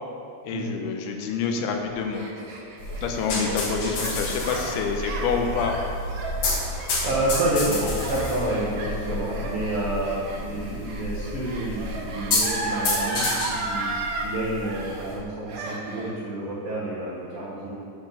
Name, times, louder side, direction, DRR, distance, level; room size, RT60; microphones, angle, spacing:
voice 1, 0.4-2.2 3.0-5.8, left 5 dB, 85° left, 3 dB, 2.6 m, -27 dB
Gasp, 1.8-14.3 14.6-15.2 15.5-16.2, right 3 dB, 70° right, 2.1 m, -34 dB
sound 1, 2.8-15.2, left 2 dB, 55° left, 2.6 m, -30 dB
voice 2, 3.3-3.6 6.6-13.9 14.2-17.8, right 1 dB, 85° right, -8 dB, 1.2 m, -29 dB
9.0 x 4.1 x 6.6 m, 2.4 s
omnidirectional pair, 4.6 m